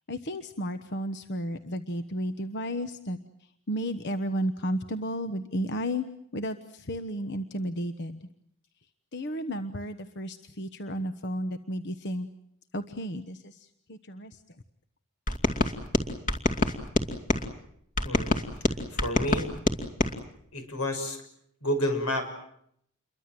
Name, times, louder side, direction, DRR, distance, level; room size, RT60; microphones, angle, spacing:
voice 1, 0.1-3.2 3.7-6.0 6.3-8.2 9.1-12.3 12.7-14.4, equal, 55° left, 9 dB, 1.1 m, -33 dB
sound 1, 15.3-17.5 18.0-20.1, left 2 dB, 35° left, 2.5 m, -26 dB
voice 2, 18.0-18.4 18.9-19.5 20.5-21.2 21.6-22.3, left 1 dB, 85° left, 7 dB, 6.5 m, -29 dB
29.0 x 23.5 x 7.7 m, 0.71 s
head